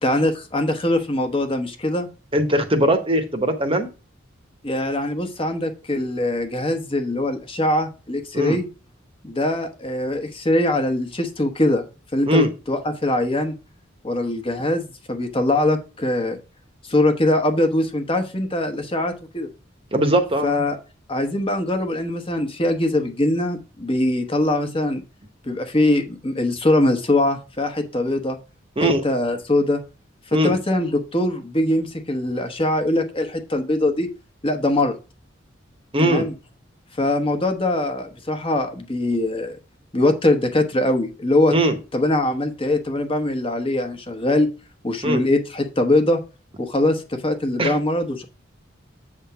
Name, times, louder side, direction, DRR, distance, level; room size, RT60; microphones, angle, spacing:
voice 1, 0.0-2.1 4.6-8.7 9.2-11.9 12.1-13.5 14.0-16.4 16.8-19.5 20.4-20.8 21.1-25.0 25.5-28.4 28.8-29.8 30.3-34.1 34.4-35.0 36.0-36.3 37.0-39.6 39.9-41.5 41.9-44.5 44.8-46.2 46.6-48.2, left 1 dB, 30° left, 6 dB, 1.1 m, -22 dB
voice 2, 2.3-3.9 8.3-8.6 12.3-12.5 19.9-20.6 28.8-29.0 30.3-30.6 35.9-36.3 41.5-41.7 45.0-45.2 47.6-47.8, equal, 30° right, 7 dB, 1.0 m, -20 dB
8.1 x 3.6 x 5.7 m, 0.31 s
head